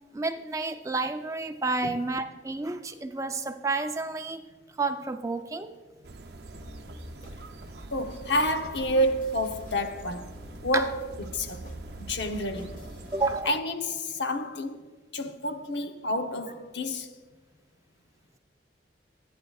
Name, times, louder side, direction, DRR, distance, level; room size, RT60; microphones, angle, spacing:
voice 1, 0.1-4.4 4.8-5.7 10.7-10.8 13.1-13.5, right 3 dB, 15° right, 0.4 m, -30 dB
sound 1, 6.0-13.4, right 2 dB, 60° right, 0.6 m, -44 dB
sound 2, 6.5-13.7, left 2 dB, 45° left, 1.2 m, -49 dB
voice 2, 7.9-10.3 10.6-12.8 13.5-17.1, equal, 70° left, 0.8 m, -29 dB
25.0 x 9.4 x 2.4 m
head